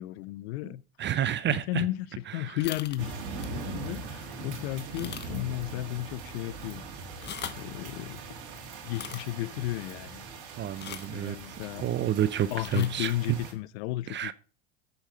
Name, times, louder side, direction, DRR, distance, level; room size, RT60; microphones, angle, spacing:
voice 1, 0.0-1.2 1.5-6.8 7.5-8.2 8.8-10.3 11.1-11.8 12.5-14.3, left 16 dB, 75° left, 0.6 m, -34 dB
voice 2, 1.0-1.8 2.4-2.6 10.6-11.6 11.8-13.1 14.1-14.3, right 11 dB, 35° right, 0.6 m, -30 dB
sound 1, 2.6-3.0 3.4-3.6 4.1-4.2 4.9-5.5 5.8-5.9 7.1-7.7 8.9-9.2 10.8-11.2 12.6-12.9, left 8 dB, 30° left, 1.0 m, -40 dB
sound 2, 3.0-13.5, right 4 dB, 65° right, 3.0 m, -41 dB
8.0 x 7.2 x 5.6 m
hypercardioid pair, 85°, 33 cm